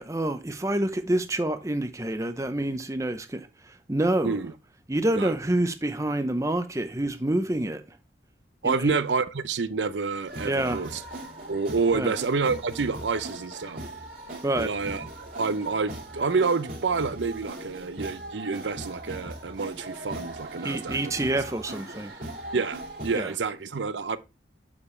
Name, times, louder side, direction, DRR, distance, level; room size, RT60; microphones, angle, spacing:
voice 1, 0.0-4.4 4.9-8.0 8.6-8.9 10.4-10.8 11.9-12.1 14.4-14.7 20.6-22.2 23.1-23.3, right 1 dB, 15° right, 0.7 m, -27 dB
voice 2, 8.6-11.0 11.5-13.8 14.6-15.0 15.4-21.1 22.5-24.2, right 4 dB, 80° right, 0.7 m, -28 dB
sound 1, 10.3-23.2, right 1 dB, 50° right, 2.1 m, -39 dB
7.3 x 6.8 x 3.2 m
head